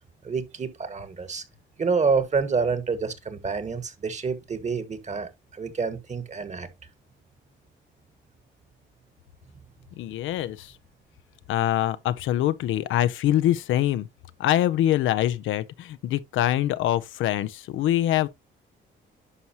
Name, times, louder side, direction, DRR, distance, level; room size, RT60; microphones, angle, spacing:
voice 1, 0.2-1.4 1.8-6.7, right 5 dB, 35° right, 1.5 m, -28 dB
voice 2, 10.0-10.7 11.5-14.1 14.4-18.3, left 13 dB, 85° left, 0.6 m, -24 dB
11.0 x 4.7 x 2.8 m
cardioid pair, 90°, 20 cm